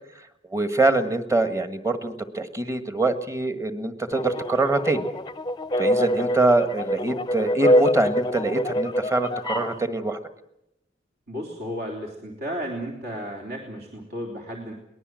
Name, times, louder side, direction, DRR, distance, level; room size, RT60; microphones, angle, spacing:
voice 1, 0.5-5.1 5.8-10.2, right 2 dB, 15° right, 10 dB, 1.6 m, -24 dB
sound 1, 4.1-9.8, equal, 25° left, 0.8 m, -25 dB
voice 2, 11.3-14.7, equal, 55° right, 0 dB, 3.5 m, -33 dB
22.5 x 19.5 x 7.7 m, 0.84 s
head